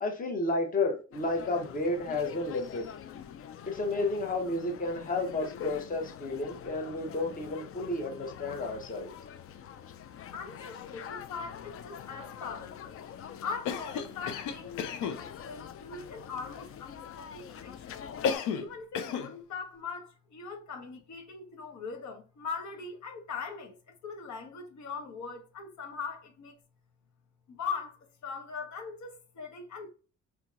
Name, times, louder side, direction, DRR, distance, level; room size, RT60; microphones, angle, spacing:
voice 1, 0.0-2.9 3.6-9.1, left 2 dB, 30° left, 1.0 m, -32 dB
sound 1, 1.1-18.4, left 9 dB, 50° left, 0.5 m, -45 dB
voice 2, 10.3-13.0 13.4-18.0 18.5-23.8 24.0-26.6 27.5-29.9, left 5 dB, 70° left, 1.2 m, -41 dB
Cough, 13.6-15.2 18.2-18.7 18.9-19.3, left 7 dB, 90° left, 0.6 m, -32 dB
4.4 x 2.8 x 2.4 m
cardioid pair, 90°, 30 cm